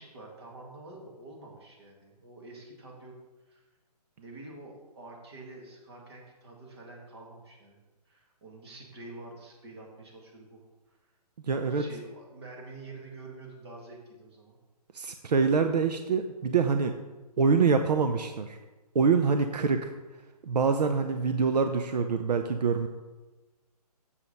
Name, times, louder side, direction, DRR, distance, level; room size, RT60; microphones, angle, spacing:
voice 1, 0.0-3.1 3.4-3.6 4.2-10.6 10.9-11.0 11.6-14.6, right 2 dB, 40° right, -1 dB, 2.1 m, -47 dB
voice 2, 11.5-11.8 14.9-16.9 17.4-18.6 18.9-19.9 20.4-22.9, right 5 dB, 80° right, 7 dB, 0.7 m, -25 dB
7.4 x 6.3 x 5.3 m, 1.2 s
hypercardioid pair, 170°, 21 cm